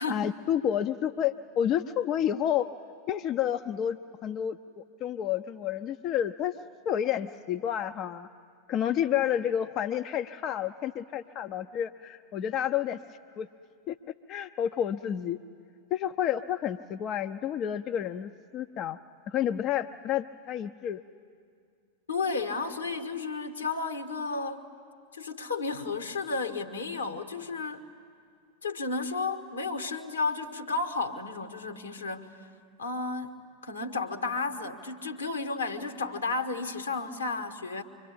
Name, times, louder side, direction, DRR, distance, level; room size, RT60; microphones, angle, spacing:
voice 1, 0.1-2.7 3.1-6.5 6.9-8.3 8.7-13.0 13.4-13.5 13.9-14.0 14.3-15.4 15.9-19.0 19.3-21.0, left 10 dB, 35° left, 9 dB, 0.5 m, -30 dB
voice 2, 22.1-24.7 25.1-27.8 28.6-32.5 32.8-37.8, left 3 dB, 75° left, 6 dB, 1.7 m, -33 dB
25.0 x 23.5 x 8.7 m, 2.2 s
figure-of-eight pair, 90°, 0 cm